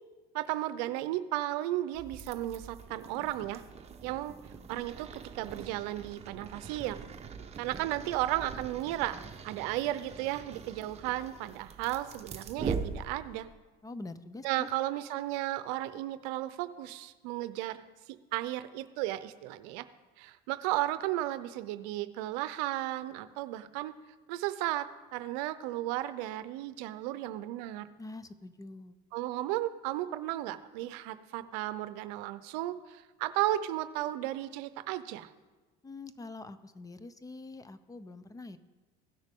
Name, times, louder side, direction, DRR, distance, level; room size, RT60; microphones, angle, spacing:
voice 1, 0.3-3.6 4.0-4.3 4.7-7.0 7.6-9.2 9.4-13.5 14.4-17.8 18.3-19.9 20.2-23.9 24.3-27.9 29.1-35.3, right 15 dB, 85° right, 13 dB, 0.6 m, -34 dB
sound 1, 1.9-13.5, right 5 dB, 30° right, 0.9 m, -42 dB
voice 2, 13.8-14.7 28.0-29.0 35.8-38.6, left 3 dB, 15° left, 13 dB, 0.5 m, -45 dB
16.0 x 6.5 x 3.6 m, 1.2 s
supercardioid pair, 100°, 21 cm